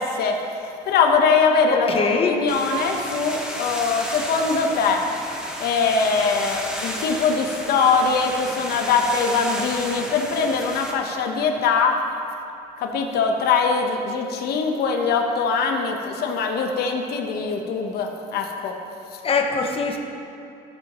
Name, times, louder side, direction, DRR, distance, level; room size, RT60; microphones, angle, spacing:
voice 1, 0.0-5.0 5.6-12.0 12.8-18.7, left 5 dB, 70° left, 3 dB, 1.1 m, -22 dB
voice 2, 1.7-2.3 19.2-20.0, left 4 dB, 35° left, 3 dB, 1.0 m, -22 dB
sound 1, 2.5-10.9, equal, 5° right, 1.2 m, -33 dB
14.5 x 6.1 x 3.1 m, 2.7 s
cardioid pair, 110°, 17 cm